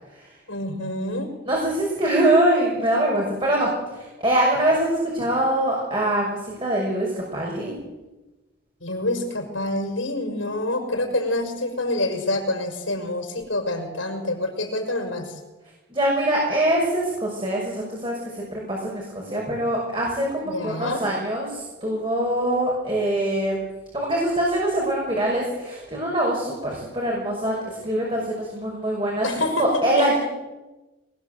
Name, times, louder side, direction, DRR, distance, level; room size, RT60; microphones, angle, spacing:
voice 1, 0.5-1.3 5.2-5.3 8.8-15.3 20.4-21.0 29.2-30.1, left 1 dB, 80° left, 2 dB, 5.9 m, -27 dB
voice 2, 1.5-7.8 15.9-23.6 23.9-29.3 29.6-30.2, right 1 dB, 25° right, -2 dB, 6.2 m, -23 dB
24.5 x 20.5 x 8.1 m, 1.1 s
head